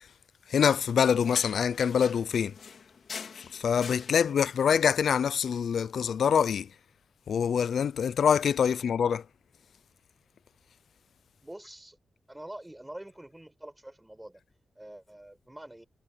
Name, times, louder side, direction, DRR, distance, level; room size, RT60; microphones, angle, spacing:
voice 1, 0.5-2.5 3.5-6.7 7.3-9.2, left 7 dB, 85° left, 0.4 m, -25 dB
sound 1, 0.7-4.7, left 6 dB, 65° left, 3.7 m, -45 dB
voice 2, 11.4-12.0 12.3-14.4 14.8-15.9, right 1 dB, 10° right, 5.3 m, -46 dB
wide cardioid pair, 130°, 0 cm